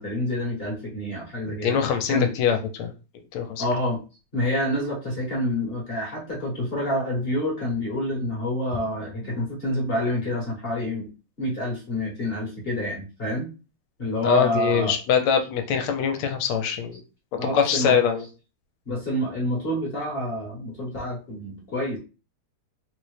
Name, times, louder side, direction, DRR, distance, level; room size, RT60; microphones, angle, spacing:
voice 1, 0.0-1.8 2.1-2.3 3.6-4.0 4.3-11.1 11.4-13.5 14.0-14.9 17.4-18.0 18.9-22.0, left 1 dB, 35° left, -4 dB, 0.9 m, -27 dB
voice 2, 1.5-2.9 3.3-3.6 14.2-17.0 17.5-18.2, left 7 dB, 85° left, 6 dB, 1.5 m, -23 dB
4.2 x 2.1 x 3.1 m, 0.32 s
omnidirectional pair, 2.4 m